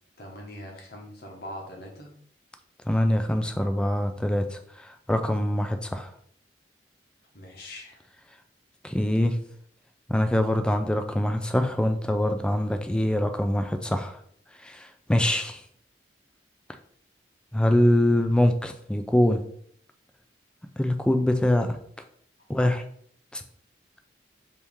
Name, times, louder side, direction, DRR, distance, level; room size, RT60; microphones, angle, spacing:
voice 1, 0.2-2.1 7.3-8.0, left 1 dB, 60° left, 0 dB, 1.1 m, -42 dB
voice 2, 2.9-6.1 8.8-9.4 10.1-14.2 14.6-15.6 17.5-19.4 20.8-21.8 22.5-22.8 23.3-23.4, left 1 dB, 5° left, 6 dB, 0.3 m, -24 dB
4.5 x 2.8 x 3.5 m, 0.63 s
head